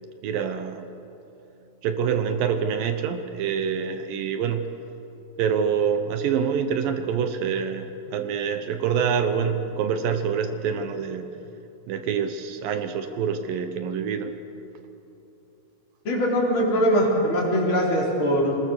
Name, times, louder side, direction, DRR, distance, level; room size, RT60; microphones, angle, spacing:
voice 1, 0.2-0.9 1.8-4.7 5.4-11.3 11.9-14.4, right 7 dB, 70° right, 8 dB, 2.3 m, -26 dB
voice 2, 16.0-18.6, equal, 30° left, -4 dB, 4.7 m, -22 dB
24.0 x 20.5 x 6.7 m, 2.9 s
omnidirectional pair, 5.0 m